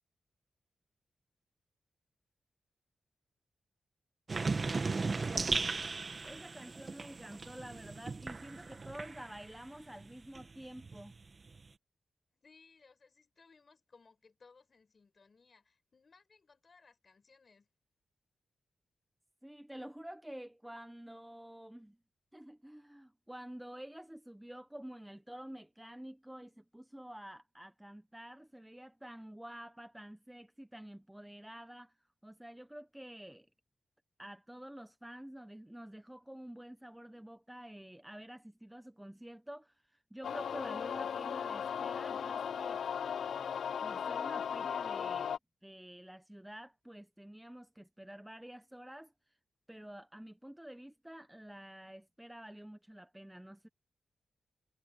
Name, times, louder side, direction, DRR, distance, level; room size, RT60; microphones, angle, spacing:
sound 1, 4.3-9.6 10.0-11.7, right 4 dB, 35° right, 1.2 m, -37 dB
voice 1, 5.2-5.9 12.3-17.7, left 4 dB, 40° left, 5.2 m, -63 dB
voice 2, 6.2-11.2 19.4-22.0 22.3-31.9 32.2-33.5 34.2-42.8 43.8-45.3 45.6-49.1 49.7-53.7, right 1 dB, 5° right, 0.9 m, -49 dB
sound 2, 40.2-45.4, left 7 dB, 75° left, 0.3 m, -37 dB
wide cardioid pair, 130°, 0 cm